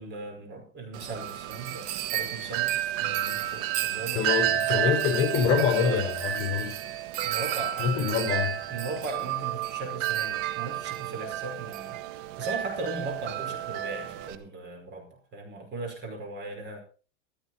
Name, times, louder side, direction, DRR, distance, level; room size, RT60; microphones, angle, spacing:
voice 1, 0.0-4.3 4.8-5.0 5.5-6.1 7.2-16.8, right 2 dB, 30° right, 4 dB, 5.3 m, -38 dB
Wind chime, 0.9-14.4, right 12 dB, 55° right, 1.6 m, -31 dB
voice 2, 4.1-6.7 7.8-8.5, left 7 dB, 35° left, 4 dB, 4.7 m, -26 dB
16.0 x 13.5 x 4.3 m, 0.37 s
supercardioid pair, 145°, 38 cm